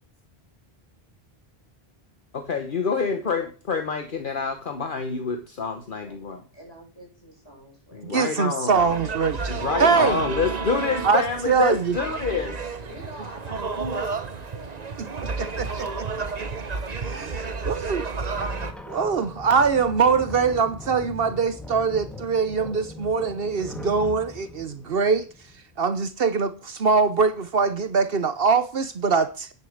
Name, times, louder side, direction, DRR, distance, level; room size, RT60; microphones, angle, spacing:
voice 1, 2.3-6.4 7.9-8.9 9.5-12.5, left 5 dB, 55° left, 1.2 m, -27 dB
voice 2, 6.5-8.1 12.1-12.4 12.8-15.1, right 1 dB, 25° left, 7.1 m, -46 dB
voice 3, 8.0-10.2 11.0-12.0 15.4-16.3 17.1-18.1 18.9-25.3 25.8-29.5, right 5 dB, 65° right, 1.1 m, -23 dB
sound 1, 8.7-18.7, right 4 dB, 40° right, 1.0 m, -31 dB
sound 2, 18.3-25.7, left 2 dB, ahead, 1.7 m, -40 dB
10.5 x 7.2 x 6.5 m
omnidirectional pair, 1.1 m